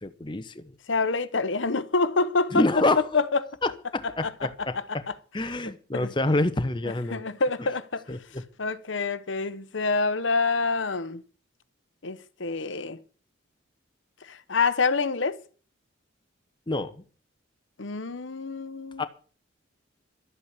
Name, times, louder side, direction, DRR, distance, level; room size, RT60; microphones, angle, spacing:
voice 1, 0.0-0.7 2.5-3.0 3.6-5.0 5.3-7.2 7.6-7.7 8.1-8.4 16.7-17.0 19.0-19.1, left 2 dB, 25° left, 0.9 m, -27 dB
voice 2, 0.9-2.7 3.1-3.2 4.0-4.3 5.9-6.1 7.1-8.0 8.6-11.2 12.0-13.0 14.2-15.4 17.8-19.0, left 4 dB, 70° left, 0.9 m, -27 dB
12.5 x 8.6 x 8.1 m
head